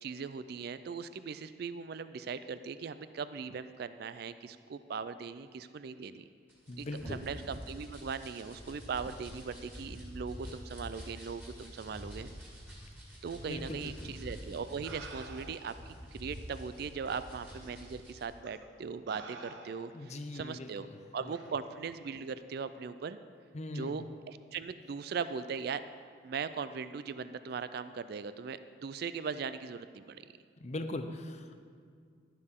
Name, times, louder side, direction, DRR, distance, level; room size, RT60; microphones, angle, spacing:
voice 1, 0.0-6.2 6.8-12.3 13.2-20.9 21.1-23.2 23.7-25.8 26.2-30.2, right 5 dB, 55° right, 12 dB, 0.3 m, -39 dB
sound 1, 6.5-18.2, equal, 10° right, 2.1 m, -47 dB
voice 2, 6.7-7.2 13.4-14.2 19.9-21.3 23.5-24.1 30.6-31.6, left 1 dB, 35° left, 7 dB, 0.5 m, -41 dB
sound 2, 14.2-14.3 14.8-15.8 16.7-16.8 17.6-17.8 18.4-18.6 19.1-20.0 21.3-21.5, right 3 dB, 70° right, 1.0 m, -49 dB
12.0 x 10.5 x 3.7 m, 2.1 s
head